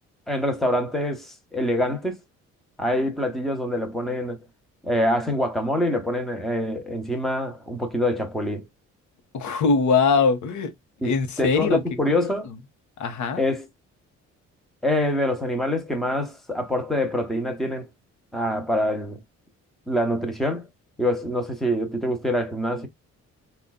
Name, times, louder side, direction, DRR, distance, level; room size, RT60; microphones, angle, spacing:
voice 1, 0.3-2.2 2.8-4.4 4.8-8.6 11.0-11.1 11.4-12.5 13.4-13.7 14.8-17.9 18.3-19.2 19.9-20.7 21.0-22.9, left 1 dB, ahead, 0.9 m, -25 dB
voice 2, 9.3-10.7 11.0-11.8 12.2-12.3 13.0-13.4, left 5 dB, 75° left, 1.0 m, -21 dB
3.8 x 2.4 x 2.2 m
cardioid pair, 90°, 30 cm